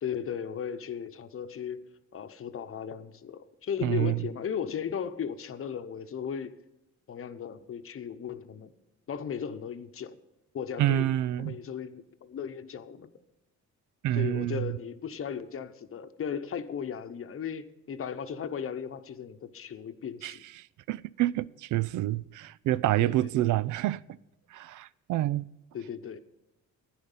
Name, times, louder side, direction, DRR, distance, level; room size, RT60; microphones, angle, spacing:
voice 1, 0.0-6.6 7.1-8.7 9.1-10.2 10.5-11.1 11.4-13.1 14.1-20.4 23.0-23.5 25.7-26.2, left 7 dB, 45° left, 0.9 m, -36 dB
voice 2, 3.8-4.2 10.8-11.6 14.0-14.8 20.2-20.4 20.9-24.0 24.5-25.5, right 15 dB, 75° right, 0.4 m, -27 dB
12.0 x 10.0 x 5.5 m
cardioid pair, 90°, 30 cm